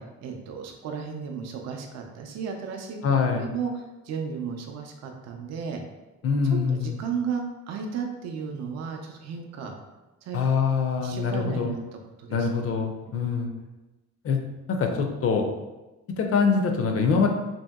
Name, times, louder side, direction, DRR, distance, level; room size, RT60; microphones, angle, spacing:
voice 1, 0.2-3.0 3.3-5.8 6.7-9.7 10.2-10.4 11.0-11.8 12.2-12.5 13.1-13.2, right 6 dB, 60° right, 3 dB, 0.5 m, -34 dB
voice 2, 3.0-3.5 6.2-6.9 10.3-11.7 12.3-13.5 14.2-14.4 14.7-15.5 16.2-17.3, left 5 dB, 50° left, 3 dB, 0.4 m, -24 dB
2.7 x 2.7 x 2.2 m, 1.1 s
cardioid pair, 90°, 30 cm